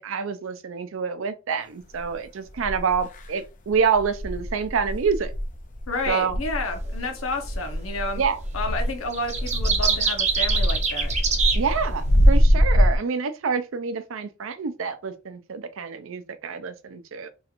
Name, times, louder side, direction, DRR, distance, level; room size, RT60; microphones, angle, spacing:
voice 1, 0.0-5.3 6.1-6.4 8.2-8.4 11.5-17.3, right 5 dB, 75° right, 0.5 m, -27 dB
sound 1, 2.0-2.1 2.6-3.3 3.7-13.0, equal, 40° left, 0.5 m, -23 dB
voice 2, 5.9-8.2 8.5-11.1, left 2 dB, 90° left, 0.9 m, -30 dB
sound 2, 6.7-6.9 8.1-8.5 8.8-12.4, right 5 dB, 35° right, 0.7 m, -25 dB
3.1 x 2.9 x 2.4 m
head